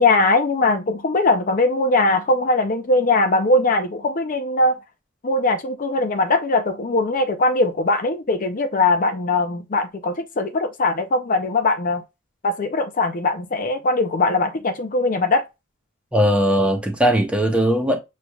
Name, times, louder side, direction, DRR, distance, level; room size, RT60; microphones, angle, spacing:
voice 1, 0.0-4.8 5.2-12.0 12.4-15.4, left 2 dB, 40° left, 0.6 m, -20 dB
voice 2, 16.1-18.0, equal, 5° right, 0.9 m, -19 dB
6.6 x 3.2 x 2.3 m
head